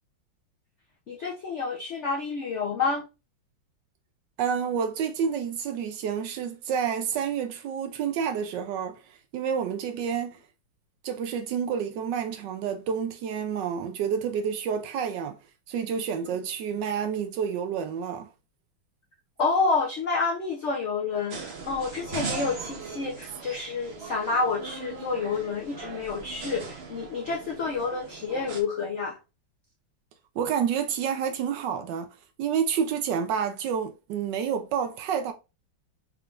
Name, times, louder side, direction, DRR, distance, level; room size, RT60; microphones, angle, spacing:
voice 1, 1.1-3.0 16.2-16.4 19.4-29.2, left 4 dB, 75° left, 0.6 m, -29 dB
voice 2, 4.4-10.4 11.0-15.4 15.7-18.3 30.4-32.1 32.4-35.3, right 7 dB, 75° right, 1.1 m, -29 dB
sound 1, 21.3-28.6, right 4 dB, 55° right, 0.7 m, -39 dB
4.5 x 3.7 x 2.4 m
omnidirectional pair, 2.2 m